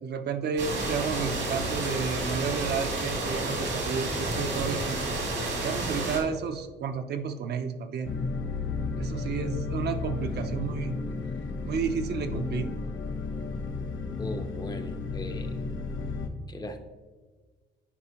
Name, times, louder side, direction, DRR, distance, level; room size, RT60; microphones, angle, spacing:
voice 1, 0.0-5.2 5.6-8.1 9.0-11.0 11.6-12.7, right 6 dB, 60° right, 7 dB, 0.6 m, -32 dB
sound 1, 0.6-6.2, right 2 dB, 80° right, 2.2 m, -30 dB
sound 2, 8.0-16.3, left 4 dB, 80° left, 0.9 m, -33 dB
voice 2, 14.2-15.5 16.5-16.8, left 2 dB, 20° left, 7 dB, 0.5 m, -39 dB
9.8 x 4.9 x 2.9 m, 1.4 s
cardioid pair, 135°, 19 cm